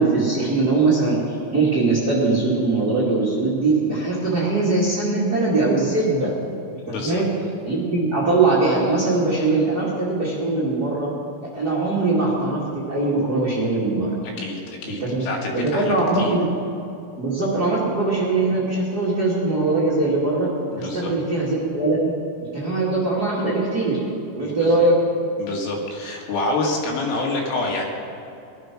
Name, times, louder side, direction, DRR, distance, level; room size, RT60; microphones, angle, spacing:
voice 1, 0.0-6.3 6.9-7.3 7.6-11.1 11.5-14.1 14.9-15.2 15.5-16.6 17.2-20.5 20.8-22.1 22.4-24.0 24.3-25.0, right 3 dB, 65° right, -6 dB, 0.9 m, -21 dB
voice 2, 6.9-7.2 14.4-16.4 20.7-21.1 24.4-24.7 25.4-27.8, left 2 dB, 75° left, -1 dB, 4.4 m, -27 dB
19.5 x 12.0 x 6.1 m, 2.8 s
omnidirectional pair, 5.9 m